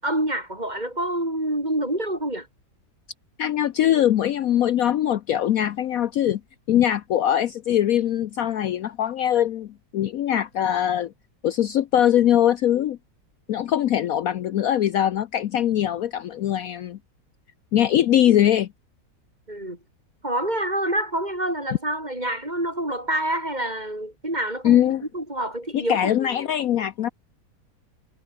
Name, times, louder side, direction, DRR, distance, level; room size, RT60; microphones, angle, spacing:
voice 1, 0.0-2.5 19.5-19.8 20.2-26.5, right 1 dB, 25° right, 6.5 m, -27 dB
voice 2, 3.4-6.4 6.7-11.1 11.4-13.0 13.5-17.0 17.7-18.7 24.6-25.0 25.7-27.1, left 11 dB, 65° left, 1.1 m, -22 dB
omnidirectional pair, 1.8 m